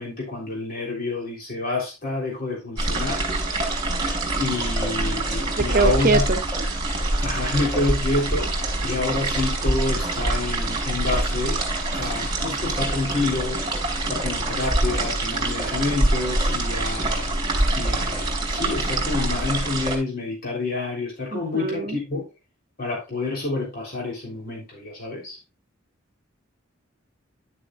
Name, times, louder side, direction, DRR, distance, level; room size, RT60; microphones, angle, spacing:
voice 1, 0.0-3.3 4.3-6.3 7.2-11.6 11.9-13.6 14.1-17.4 17.7-22.3 22.8-25.4, left 3 dB, 50° left, 3.4 m, -28 dB
sound 1, 2.8-20.0, right 2 dB, 25° right, 3.1 m, -25 dB
voice 2, 5.6-6.7 21.3-22.0, right 3 dB, 50° right, 0.8 m, -23 dB
11.0 x 7.0 x 2.4 m
head